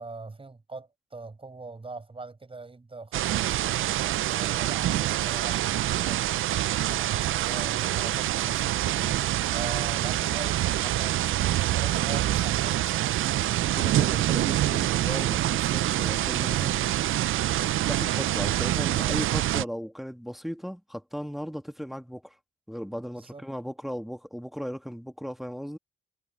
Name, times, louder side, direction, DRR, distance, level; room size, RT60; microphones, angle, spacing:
voice 1, 0.0-13.1 23.2-23.4, right 3 dB, 25° right, 5.2 m, -42 dB
sound 1, 3.1-19.6, right 14 dB, 75° right, 0.4 m, -26 dB
voice 2, 13.6-16.8 17.7-22.4 22.7-25.8, equal, ahead, 1.8 m, -37 dB
cardioid pair, 85°, 21 cm